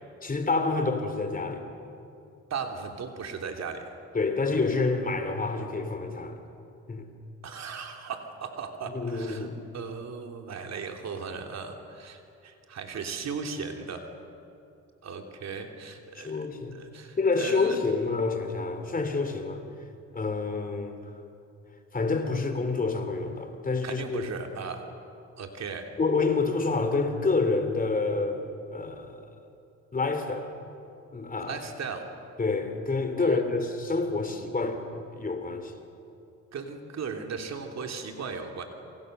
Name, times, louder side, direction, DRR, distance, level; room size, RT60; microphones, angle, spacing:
voice 1, 0.2-1.6 4.1-6.4 6.9-7.1 8.9-9.6 16.2-16.8 17.2-19.6 20.1-21.0 21.9-24.3 26.0-28.5 28.7-29.3 29.9-30.5 31.1-31.6 32.4-35.7, left 3 dB, 30° left, 7 dB, 3.3 m, -28 dB
voice 2, 2.5-3.9 7.4-14.1 15.0-16.5 16.7-17.8 23.8-24.8 25.4-25.9 31.4-32.2 33.2-33.4 36.5-38.6, right 5 dB, 60° right, 4 dB, 3.1 m, -37 dB
29.0 x 26.5 x 6.8 m, 2.7 s
cardioid pair, 90°, 30 cm